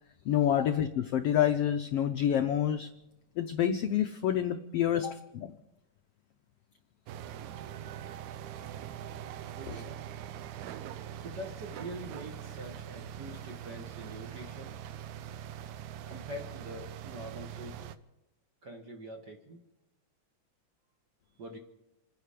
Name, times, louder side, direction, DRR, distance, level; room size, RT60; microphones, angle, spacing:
voice 1, 0.3-2.9 3.4-5.5 9.7-9.8, left 10 dB, 85° left, 7 dB, 1.3 m, -28 dB
sound 1, 7.1-18.0, right 10 dB, 75° right, 2.0 m, -43 dB
voice 2, 9.6-10.0 11.2-14.7 16.1-17.8 18.6-19.6 21.4-21.6, right 1 dB, 45° right, 2 dB, 1.5 m, -44 dB
28.5 x 10.0 x 5.0 m, 0.92 s
omnidirectional pair, 3.6 m